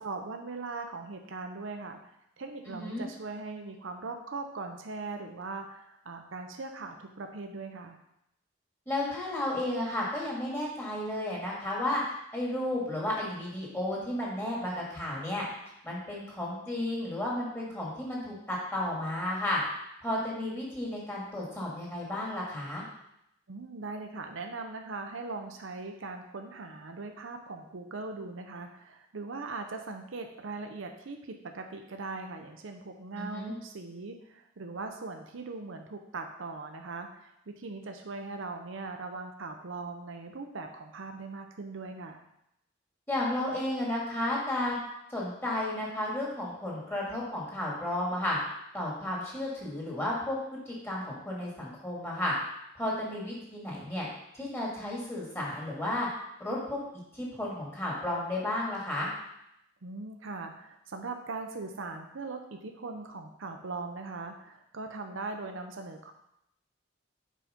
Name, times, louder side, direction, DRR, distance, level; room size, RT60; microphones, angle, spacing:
voice 1, 0.0-8.0 23.5-42.2 59.8-66.1, right 3 dB, 75° right, 4 dB, 0.7 m, -40 dB
voice 2, 2.7-3.1 8.9-12.0 12.3-15.4 15.8-19.6 20.0-22.8 33.2-33.5 43.1-44.8 45.1-48.4 48.7-50.4 50.7-52.3 52.8-54.1 54.3-56.1 56.4-56.8 57.1-59.1, left 1 dB, 10° left, -5 dB, 2.3 m, -33 dB
7.6 x 5.0 x 5.1 m, 0.80 s
head